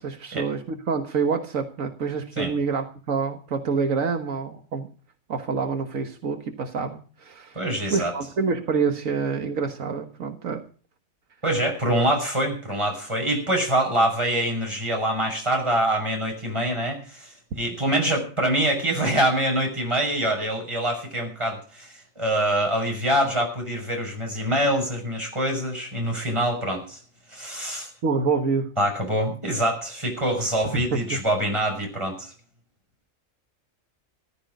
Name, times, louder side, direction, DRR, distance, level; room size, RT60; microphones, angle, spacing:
voice 1, 0.0-4.9 5.3-7.6 7.9-10.6 28.0-28.8 30.7-31.2, right 5 dB, 80° right, 6 dB, 1.8 m, -27 dB
voice 2, 7.5-8.1 11.4-27.0 27.3-27.9 28.8-32.3, right 1 dB, 20° right, 2 dB, 6.3 m, -25 dB
14.5 x 13.0 x 5.2 m, 0.38 s
omnidirectional pair, 1.4 m